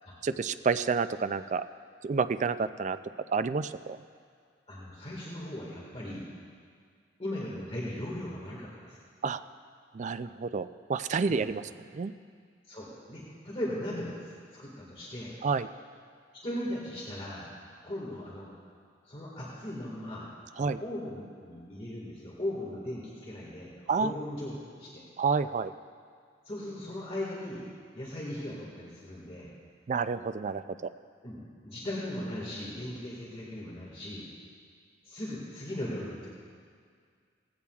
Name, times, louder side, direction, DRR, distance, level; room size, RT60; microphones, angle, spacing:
voice 1, 0.2-1.6 2.0-3.0 3.3-4.0 9.2-9.4 9.9-11.7 11.9-12.1 15.4-15.7 20.6-20.8 23.9-24.1 25.2-25.7 29.9-30.6, right 5 dB, 40° right, 12 dB, 0.4 m, -29 dB
voice 2, 4.7-6.3 7.2-9.0 11.3-11.5 12.7-14.1 14.5-15.4 16.3-17.5 17.8-18.5 19.1-20.3 20.6-25.0 26.5-27.7 27.9-29.5 31.2-34.3 35.0-36.3, left 1 dB, 30° left, -5 dB, 1.8 m, -38 dB
17.5 x 15.5 x 2.4 m, 2.1 s
head